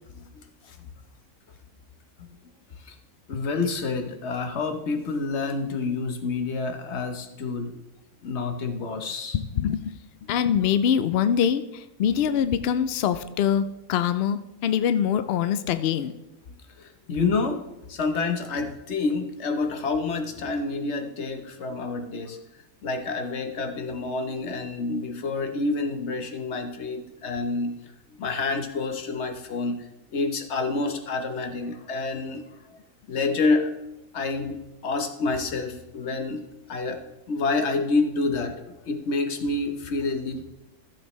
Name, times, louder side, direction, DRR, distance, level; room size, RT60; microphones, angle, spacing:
voice 1, 0.3-0.8 2.8-3.0 3.3-7.7 8.2-9.4 16.8-17.6 17.9-22.4 22.8-27.8 28.1-32.4 33.1-33.7 34.1-40.4, left 3 dB, 50° left, 6 dB, 1.1 m, -28 dB
voice 2, 9.3-9.9 10.3-16.1, left 8 dB, 80° left, 12 dB, 0.5 m, -24 dB
14.0 x 7.2 x 3.1 m, 0.96 s
omnidirectional pair, 1.6 m